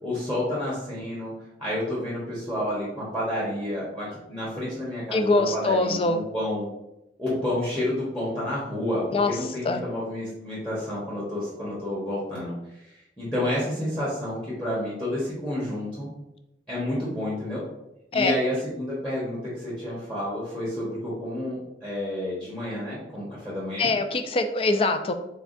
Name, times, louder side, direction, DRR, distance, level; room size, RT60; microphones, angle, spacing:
voice 1, 0.0-1.3 1.6-6.7 7.2-16.1 16.7-17.6 18.1-23.9, left 1 dB, 5° left, -7 dB, 1.1 m, -30 dB
voice 2, 5.1-6.2 9.1-9.3 9.6-9.8 18.1-18.3 23.8-25.1, left 3 dB, 30° left, 8 dB, 0.3 m, -23 dB
4.7 x 3.4 x 2.5 m, 0.88 s
head